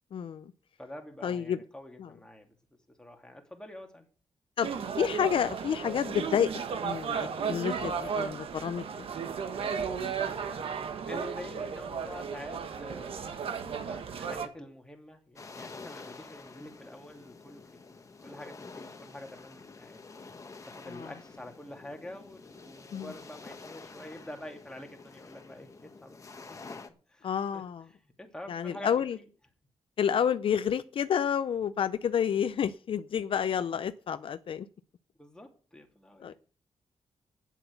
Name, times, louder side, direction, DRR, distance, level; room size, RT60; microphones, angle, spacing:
voice 1, 0.1-0.5 1.2-1.6 2.0-2.1 4.6-6.5 6.8-9.0 20.9-21.1 22.9-23.1 27.2-27.8 28.5-29.2 30.0-34.7 36.2-36.3, left 8 dB, 65° left, 13 dB, 0.5 m, -29 dB
voice 2, 0.8-2.6 3.0-4.1 11.0-17.8 18.2-20.0 20.7-26.2 26.5-26.8 27.1-29.3 35.2-36.4, left 1 dB, 10° left, 2 dB, 2.7 m, -47 dB
sound 1, 4.6-14.5, right 6 dB, 70° right, 1.5 m, -34 dB
sound 2, 15.4-26.9, left 4 dB, 30° left, 1.4 m, -48 dB
9.2 x 7.8 x 8.1 m, 0.40 s
cardioid pair, 105°, 10 cm